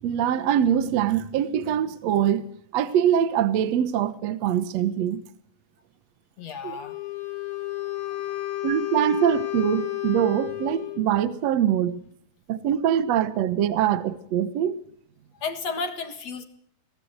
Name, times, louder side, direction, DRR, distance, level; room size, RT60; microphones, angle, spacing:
voice 1, 0.0-2.5 2.7-5.2 6.6-6.8 8.6-12.0 12.5-14.8, right 10 dB, 70° right, 1.6 m, -23 dB
voice 2, 6.4-7.0 15.4-16.4, left 4 dB, 50° left, 2.4 m, -32 dB
Wind instrument woodwind instrument, 6.8-11.1, left 16 dB, 70° left, 4.5 m, -31 dB
23.5 x 18.5 x 8.1 m
omnidirectional pair, 4.4 m